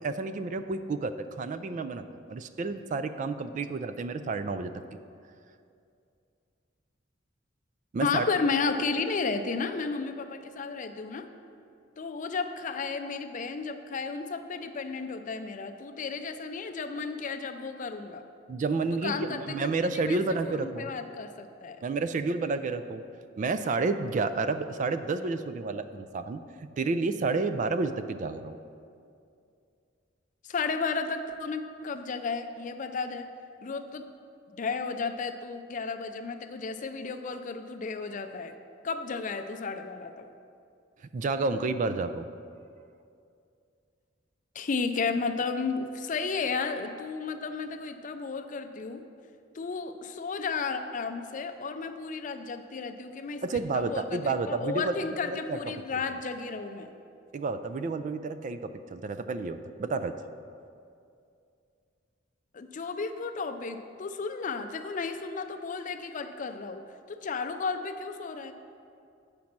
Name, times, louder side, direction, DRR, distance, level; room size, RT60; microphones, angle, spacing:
voice 1, 0.0-4.7 7.9-8.2 18.5-20.9 21.8-23.0 23.4-26.4 26.8-28.5 41.1-42.3 53.4-55.6 57.3-60.2, right 3 dB, 40° right, 10 dB, 0.3 m, -30 dB
voice 2, 8.0-11.3 12.0-18.2 19.0-21.8 30.5-33.3 33.6-34.1 34.5-38.5 38.8-40.3 44.5-49.0 49.5-56.9 62.5-68.5, left 4 dB, 40° left, 8 dB, 0.4 m, -33 dB
8.4 x 5.2 x 5.9 m, 2.4 s
head